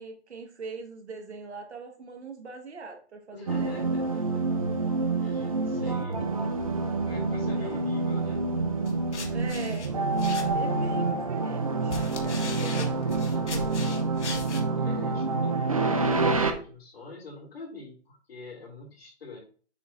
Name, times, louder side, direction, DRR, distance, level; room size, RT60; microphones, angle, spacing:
voice 1, 0.0-3.9 5.7-5.9 7.6-7.7 9.3-9.9 10.5-12.0, right 4 dB, 75° right, 3 dB, 2.0 m, -42 dB
voice 2, 3.3-4.5 5.1-6.5 7.1-8.5 12.2-19.4, left 3 dB, 60° left, -2 dB, 3.0 m, -44 dB
sound 1, 3.5-16.5, right 3 dB, 30° right, 0.5 m, -27 dB
sound 2, 8.8-10.8 11.6-14.6, left 4 dB, 80° left, 1.5 m, -39 dB
7.2 x 5.0 x 2.7 m, 0.40 s
hypercardioid pair, 175°, 34 cm